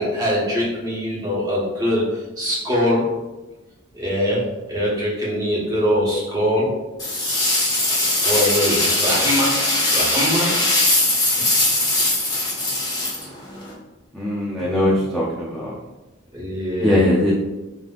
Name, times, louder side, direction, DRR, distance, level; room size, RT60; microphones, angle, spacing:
voice 1, 0.0-3.1 3.9-6.8 8.2-10.7 11.4-11.5 16.3-17.0, equal, 20° right, -7 dB, 1.3 m, -22 dB
sound 1, 7.0-13.7, left 1 dB, 20° left, 1.0 m, -20 dB
voice 2, 14.1-15.8 16.8-17.3, left 1 dB, ahead, -8 dB, 0.5 m, -20 dB
5.5 x 3.3 x 2.5 m, 1.1 s
head